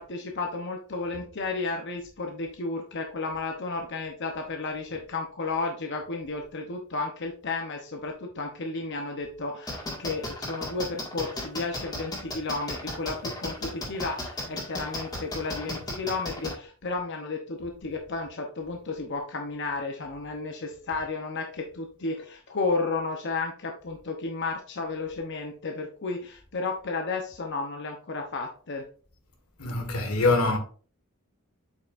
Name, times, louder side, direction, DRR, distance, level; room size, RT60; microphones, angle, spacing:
voice 1, 0.0-28.8, left 3 dB, 55° left, 0.8 m, -33 dB
sound 1, 9.7-16.5, left 1 dB, 20° left, 1.9 m, -34 dB
voice 2, 29.6-30.6, left 3 dB, 85° left, 1.6 m, -24 dB
8.0 x 5.6 x 2.5 m
head